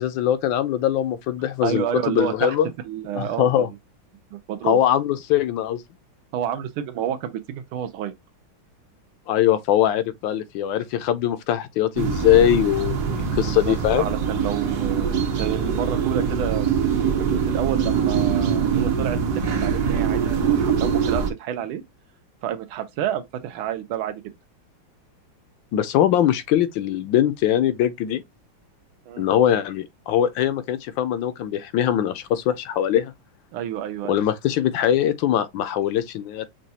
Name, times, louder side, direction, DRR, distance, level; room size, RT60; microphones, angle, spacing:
voice 1, 0.0-2.7 3.1-3.7 4.6-5.8 9.3-14.1 25.7-28.2 29.2-33.1 34.1-36.5, left 11 dB, 75° left, 1.2 m, -21 dB
voice 2, 1.6-2.6 2.8-3.7 4.3-4.8 6.3-8.1 13.3-16.7 17.3-21.8 22.4-24.2 29.1-29.3 33.5-34.2, right 10 dB, 80° right, 1.5 m, -29 dB
sound 1, 12.0-21.3, right 6 dB, 60° right, 1.3 m, -23 dB
6.1 x 2.3 x 2.7 m
omnidirectional pair, 2.3 m